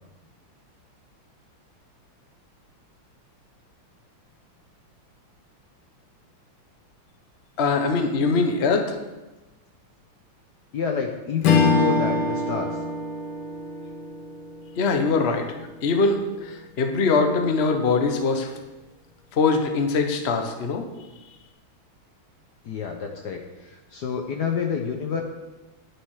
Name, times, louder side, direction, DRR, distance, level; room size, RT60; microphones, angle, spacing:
voice 1, 7.6-9.0 14.8-15.5 15.8-18.5 19.3-20.9, left 4 dB, 40° left, 5 dB, 1.0 m, -22 dB
voice 2, 10.7-12.8 22.6-25.2, left 6 dB, 60° left, 3 dB, 1.2 m, -28 dB
Strum, 11.4-16.0, left 4 dB, 80° left, 2.1 m, -25 dB
9.8 x 9.6 x 4.8 m, 1.1 s
omnidirectional pair, 2.4 m